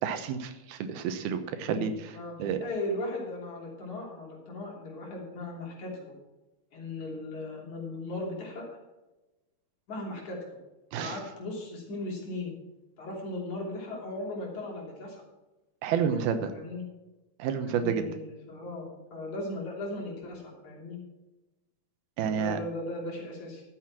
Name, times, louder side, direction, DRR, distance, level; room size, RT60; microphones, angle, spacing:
voice 1, 0.0-2.6 10.9-11.2 15.8-16.5 17.4-18.1 22.2-22.6, right 7 dB, 90° right, 9 dB, 2.9 m, -30 dB
voice 2, 2.1-6.1 6.7-8.7 9.9-10.6 11.0-12.5 13.0-15.2 16.5-16.9 17.6-21.0 22.2-23.6, left 2 dB, 55° left, -2 dB, 4.4 m, -37 dB
13.0 x 7.7 x 6.0 m, 1.0 s
omnidirectional pair, 4.2 m